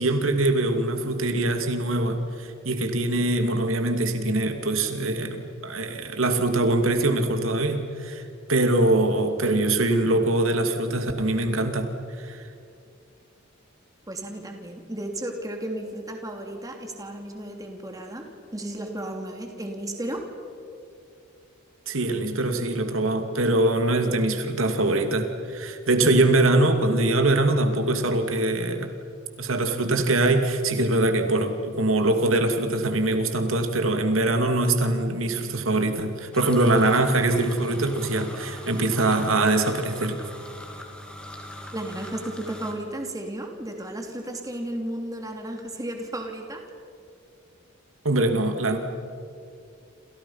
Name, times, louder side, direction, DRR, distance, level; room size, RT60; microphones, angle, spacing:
voice 1, 0.0-8.2 8.5-11.9 12.2-12.5 21.9-28.9 29.4-40.2 48.0-48.8, right 2 dB, 85° right, 6 dB, 2.5 m, -23 dB
voice 2, 14.1-18.3 18.5-20.2 41.7-46.6, right 1 dB, 15° right, 3 dB, 3.0 m, -34 dB
sound 1, 36.3-42.7, left 1 dB, 5° left, 3.2 m, -41 dB
29.0 x 28.0 x 5.7 m, 2.4 s
head